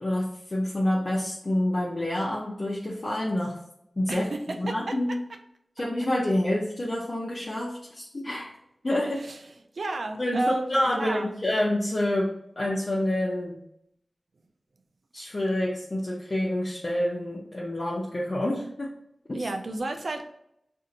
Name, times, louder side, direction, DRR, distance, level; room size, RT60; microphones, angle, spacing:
voice 1, 0.0-3.6 4.0-5.2 5.8-8.5 8.8-9.3 10.2-13.6 15.1-18.9 19.3-19.4, left 1 dB, 45° left, -5 dB, 0.7 m, -28 dB
voice 2, 4.1-5.0 9.2-9.4 9.7-11.3 19.3-20.2, right 2 dB, 75° right, 5 dB, 0.5 m, -31 dB
2.6 x 2.5 x 4.0 m, 0.75 s
wide cardioid pair, 60°, 0 cm